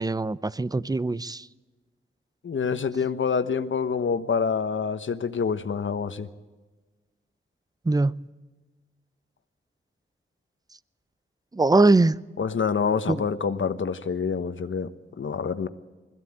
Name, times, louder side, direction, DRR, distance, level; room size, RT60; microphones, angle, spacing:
voice 1, 0.0-1.5 7.9-8.2 11.5-12.2 13.1-13.2, right 2 dB, 20° right, 19 dB, 0.5 m, -21 dB
voice 2, 2.4-6.3 12.4-14.9 15.2-15.7, left 6 dB, 70° left, 11 dB, 1.1 m, -26 dB
21.0 x 15.0 x 8.8 m, 1.3 s
wide cardioid pair, 75°, 20 cm